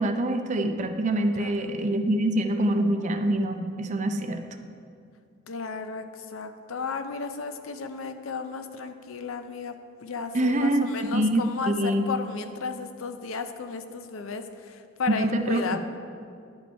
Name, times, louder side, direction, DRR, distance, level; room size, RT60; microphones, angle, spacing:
voice 1, 0.0-4.4 10.3-10.9 11.1-12.0 15.1-15.8, right 1 dB, 35° right, 6 dB, 0.5 m, -25 dB
voice 2, 1.3-1.8 5.5-15.8, left 4 dB, 75° left, 8 dB, 0.5 m, -34 dB
11.0 x 5.3 x 4.4 m, 2.4 s
head